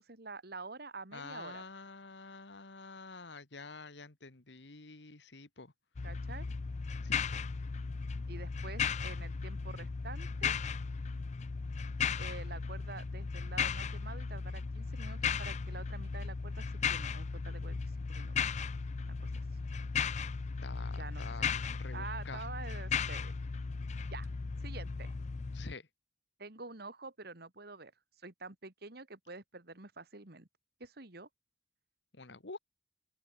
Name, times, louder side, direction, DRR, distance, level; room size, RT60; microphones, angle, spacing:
voice 1, 0.0-1.6 6.0-6.5 8.3-10.6 12.2-17.8 18.1-18.4 19.0-19.5 21.0-21.2 21.9-23.3 24.1-24.3 24.6-25.1 26.4-27.9 28.2-30.5 30.8-31.3, right 3 dB, 65° right, 2.6 m, -47 dB
voice 2, 1.1-5.7 7.0-7.4 20.6-22.5 25.5-25.9 32.1-32.6, left 3 dB, 80° left, 2.0 m, -48 dB
sound 1, 6.0-25.7, left 5 dB, 40° left, 0.4 m, -36 dB
open air
head